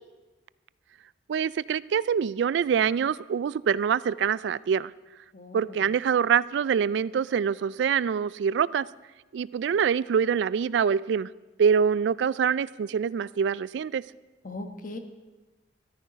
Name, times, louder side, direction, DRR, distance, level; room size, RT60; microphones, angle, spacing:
voice 1, 1.3-4.9 5.5-8.9 9.3-11.3 11.6-14.0, right 7 dB, 70° right, 19 dB, 0.3 m, -25 dB
voice 2, 5.3-5.9 14.4-15.0, left 2 dB, 45° left, 6 dB, 1.3 m, -39 dB
13.5 x 12.0 x 5.1 m, 1.2 s
head